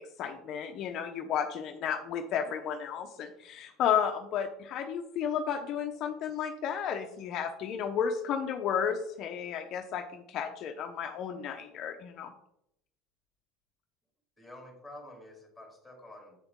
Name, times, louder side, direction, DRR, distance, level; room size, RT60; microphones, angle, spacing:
voice 1, 0.0-12.3, left 8 dB, 45° left, 4 dB, 0.7 m, -33 dB
voice 2, 14.4-16.4, left 1 dB, ahead, 0 dB, 2.9 m, -49 dB
8.1 x 6.9 x 3.6 m, 0.77 s
cardioid pair, 150°, 0 cm